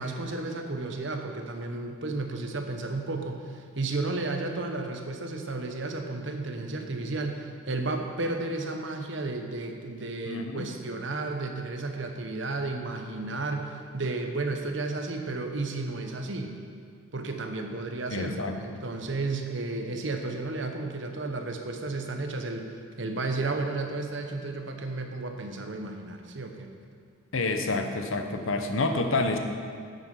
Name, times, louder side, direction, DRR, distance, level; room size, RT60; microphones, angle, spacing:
voice 1, 0.0-16.5 17.1-22.7 23.0-26.7, right 3 dB, 65° right, 4 dB, 1.0 m, -33 dB
voice 2, 10.3-10.7 18.1-18.8 27.3-29.4, left 3 dB, 80° left, 5 dB, 0.9 m, -28 dB
9.5 x 8.0 x 5.6 m, 2.1 s
head